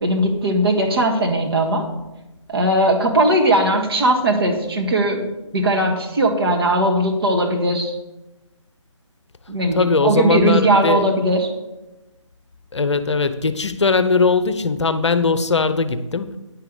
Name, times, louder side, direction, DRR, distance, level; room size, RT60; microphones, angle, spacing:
voice 1, 0.0-1.9 2.5-5.2 5.5-8.0 9.5-11.5, right 1 dB, 50° right, 1.8 m, -18 dB
voice 2, 9.7-11.1 12.7-16.3, left 4 dB, 60° left, 0.7 m, -19 dB
10.0 x 5.8 x 6.8 m
figure-of-eight pair, 150°, 16 cm